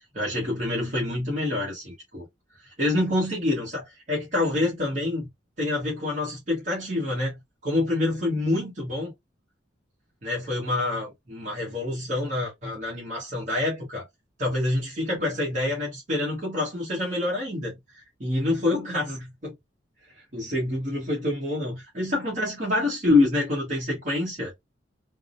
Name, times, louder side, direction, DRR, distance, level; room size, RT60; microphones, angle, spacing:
voice 1, 0.1-2.3 2.6-5.3 5.6-7.4 7.6-9.1 10.2-14.1 14.4-19.5 20.3-24.5, left 2 dB, 40° right, 1.2 m, -27 dB
3.5 x 2.1 x 2.5 m
head